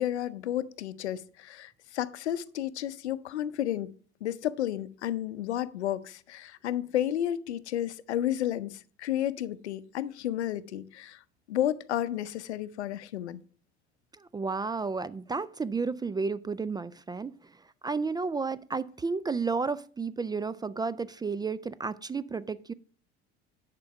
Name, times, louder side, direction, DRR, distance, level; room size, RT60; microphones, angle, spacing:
voice 1, 0.0-3.9 4.2-11.2 11.5-13.4, left 12 dB, 85° left, 0.6 m, -32 dB
voice 2, 14.2-17.5 17.8-22.7, right 4 dB, 15° right, 0.3 m, -32 dB
10.5 x 5.2 x 5.7 m
hypercardioid pair, 70°, 33 cm